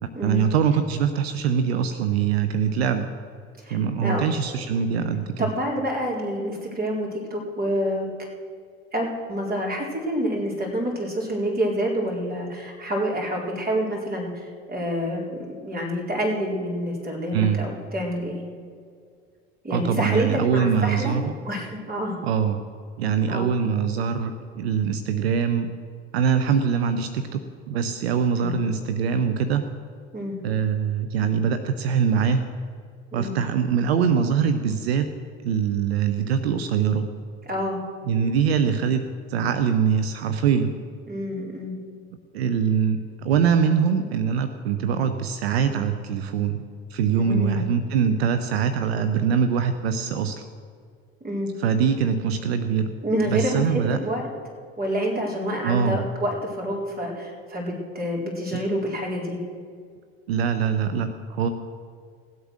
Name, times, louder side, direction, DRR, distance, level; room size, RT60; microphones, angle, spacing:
voice 1, 0.0-3.1 3.7-5.5 17.3-17.7 19.7-21.3 22.2-22.6 23.0-25.7 26.1-27.4 27.7-29.6 30.4-32.4 33.1-35.1 35.4-37.1 38.1-40.7 42.3-46.6 46.9-50.4 51.6-52.9 53.3-54.0 55.6-56.0 58.5-58.6 60.3-61.5, right 7 dB, 85° right, 9 dB, 0.7 m, -23 dB
voice 2, 3.6-4.2 5.4-8.1 8.9-18.4 19.6-21.2 21.4-22.2 23.3-23.5 28.3-28.7 30.1-30.4 33.1-33.3 37.5-37.8 41.1-41.8 47.1-47.7 51.2-51.5 53.0-54.2 54.8-59.4, equal, 30° right, -1 dB, 4.4 m, -28 dB
16.5 x 8.3 x 6.4 m, 2.1 s
hypercardioid pair, 70°, 30 cm